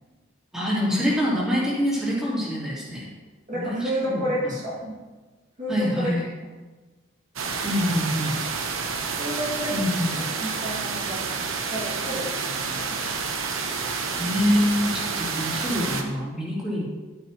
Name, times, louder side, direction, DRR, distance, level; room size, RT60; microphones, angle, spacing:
voice 1, 0.5-3.0 3.5-4.6 5.7-6.3 7.6-8.3 9.7-10.2 14.2-16.9, equal, 5° right, -8 dB, 3.1 m, -25 dB
voice 2, 3.5-4.9 5.6-6.1 9.2-9.8 10.4-11.2 11.7-13.4, equal, 40° right, -6 dB, 2.2 m, -30 dB
sound 1, 7.4-16.0, right 5 dB, 85° right, 1.0 m, -29 dB
12.0 x 8.7 x 3.0 m, 1.3 s
head